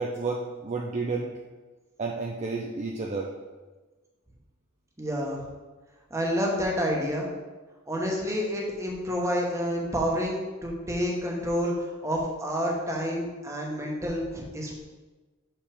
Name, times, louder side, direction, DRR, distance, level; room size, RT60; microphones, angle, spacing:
voice 1, 0.0-1.3 2.0-3.3, right 3 dB, 35° right, -1 dB, 0.5 m, -31 dB
voice 2, 5.0-5.4 6.1-7.3 7.9-11.7 12.0-14.8, equal, 15° right, -2 dB, 1.1 m, -29 dB
6.0 x 5.8 x 3.4 m, 1.3 s
head